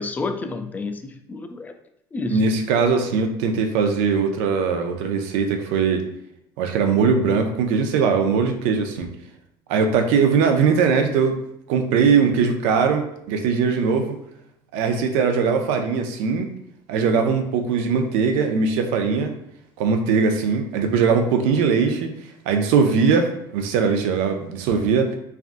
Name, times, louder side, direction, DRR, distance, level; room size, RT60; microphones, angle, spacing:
voice 1, 0.0-1.7 2.1-2.5, left 3 dB, 15° left, 6 dB, 0.3 m, -30 dB
voice 2, 2.3-6.0 6.6-9.1 9.7-11.4 11.7-14.2 14.7-16.5 16.9-19.3 19.8-22.1 22.5-25.2, right 5 dB, 80° right, 5 dB, 0.5 m, -20 dB
3.4 x 2.4 x 2.5 m, 0.77 s
cardioid pair, 120°, 11 cm